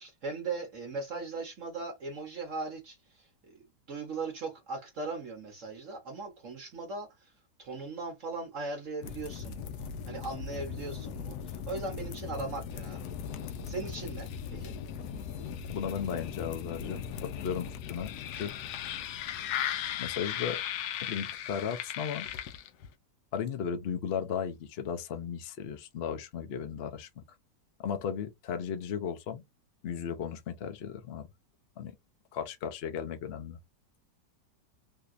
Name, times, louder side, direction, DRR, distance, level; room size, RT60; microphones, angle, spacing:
voice 1, 0.0-7.3 7.6-13.0 13.7-14.8, right 3 dB, 55° right, 1.0 m, -39 dB
sound 1, 9.0-22.9, left 9 dB, 70° left, 1.0 m, -38 dB
voice 2, 15.7-18.5 20.0-20.6 21.0-22.3 23.3-27.2 27.8-29.4 29.8-31.3 31.8-31.9 32.3-33.6, left 7 dB, 85° left, 0.5 m, -35 dB
3.5 x 2.8 x 2.4 m
omnidirectional pair, 2.0 m